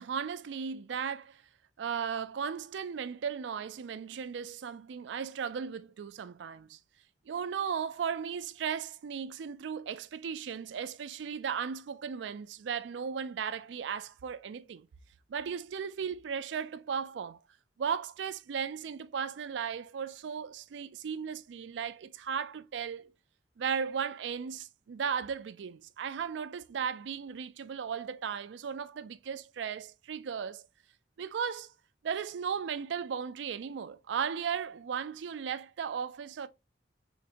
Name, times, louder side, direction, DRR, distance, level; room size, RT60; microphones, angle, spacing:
voice 1, 0.0-1.4 1.8-6.8 7.3-14.9 15.3-17.4 17.8-23.1 23.6-30.6 31.2-31.7 32.0-36.5, right 7 dB, 85° right, 0.4 m, -36 dB
4.0 x 3.2 x 2.5 m
head